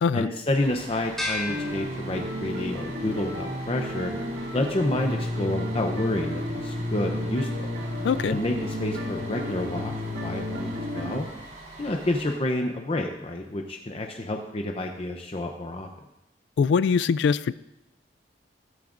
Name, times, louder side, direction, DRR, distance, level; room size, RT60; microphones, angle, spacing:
voice 1, 0.1-4.1 4.5-7.7 8.3-9.9 10.2-11.3 11.8-15.9, left 1 dB, 35° left, 3 dB, 0.7 m, -29 dB
Bus, 0.5-12.3, right 2 dB, 40° right, 4.0 m, -44 dB
sound 1, 1.2-2.7, left 2 dB, ahead, 3.7 m, -34 dB
sound 2, 1.5-11.2, left 1 dB, 65° right, 2.1 m, -32 dB
voice 2, 8.0-8.4 16.6-17.5, left 6 dB, 80° left, 17 dB, 0.3 m, -22 dB
14.0 x 14.0 x 2.5 m, 0.92 s
head